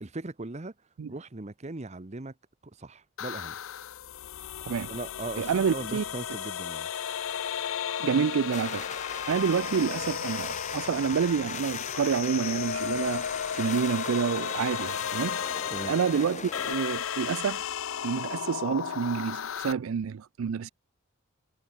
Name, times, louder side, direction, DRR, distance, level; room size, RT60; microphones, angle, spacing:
voice 1, 0.0-0.7 1.1-2.3 2.8-3.5 4.9-6.9 15.7-15.9, right 2 dB, 35° right, 1.0 m, -39 dB
sound 1, 3.2-19.7, left 8 dB, 70° left, 0.5 m, -34 dB
voice 2, 5.4-6.0 8.0-8.9 9.3-13.3 13.6-15.4 15.9-17.6 18.0-20.7, right 6 dB, 80° right, 0.4 m, -28 dB
sound 2, 8.5-16.8, left 6 dB, 35° left, 3.6 m, -38 dB
head